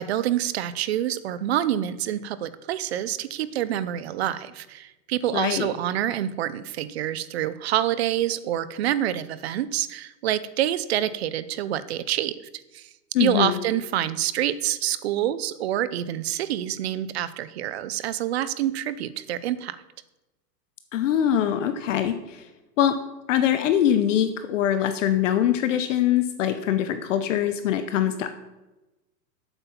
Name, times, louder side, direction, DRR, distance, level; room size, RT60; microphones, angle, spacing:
voice 1, 0.0-12.4 12.7-12.8 13.2-19.8, right 12 dB, 40° right, 15 dB, 0.5 m, -27 dB
voice 2, 5.3-5.7 13.1-13.6 20.9-22.4 22.8-23.0 23.3-28.3, left 10 dB, 50° left, 9 dB, 0.7 m, -23 dB
8.0 x 7.3 x 5.7 m, 1.0 s
hypercardioid pair, 155°, 50 cm